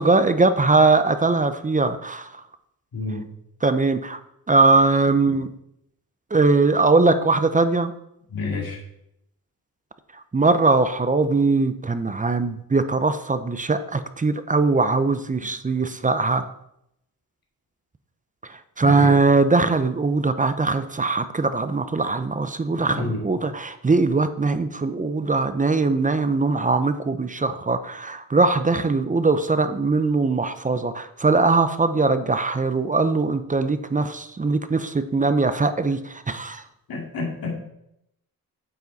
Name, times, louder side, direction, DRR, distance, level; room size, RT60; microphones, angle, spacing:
voice 1, 0.0-2.3 3.6-4.2 4.5-5.5 6.3-7.9 10.3-16.5 18.5-36.6, right 3 dB, 20° right, 10 dB, 0.6 m, -21 dB
voice 2, 2.9-3.3 8.3-8.8 18.8-19.1 22.9-23.2 36.9-37.6, left 3 dB, 70° left, -1 dB, 2.7 m, -29 dB
9.2 x 8.2 x 4.0 m, 0.79 s
wide cardioid pair, 105°, 36 cm